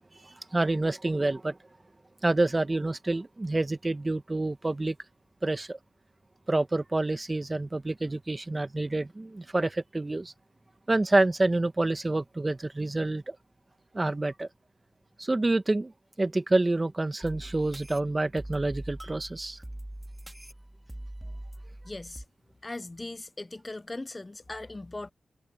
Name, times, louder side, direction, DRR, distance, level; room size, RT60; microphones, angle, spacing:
voice 1, 0.2-1.6 2.2-4.9 5.4-5.8 6.5-10.3 10.9-13.4 13.9-14.5 15.2-15.9 16.2-19.6, right 2 dB, 30° right, 1.3 m, -27 dB
sound 1, 17.2-22.3, right 1 dB, 15° right, 2.7 m, -42 dB
voice 2, 21.8-22.2 22.6-25.1, left 2 dB, 30° left, 0.7 m, -39 dB
cardioid pair, 50°, 0 cm